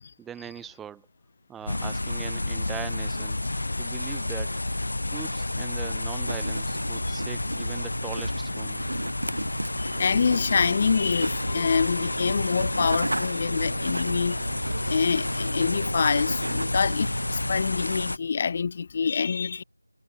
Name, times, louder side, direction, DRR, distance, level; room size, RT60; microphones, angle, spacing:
voice 1, 0.2-1.0 1.5-3.4 3.8-4.5 5.0-8.8, right 9 dB, 5° right, 0.8 m, -41 dB
sound 1, 1.7-18.2, left 2 dB, 65° left, 6.8 m, -30 dB
sound 2, 6.3-17.6, right 1 dB, 85° right, 6.5 m, -34 dB
voice 2, 9.8-14.4 14.9-19.6, left 5 dB, 25° left, 0.5 m, -26 dB
sound 3, 9.9-16.7, right 2 dB, 50° right, 3.9 m, -42 dB
figure-of-eight pair, 175°, 0 cm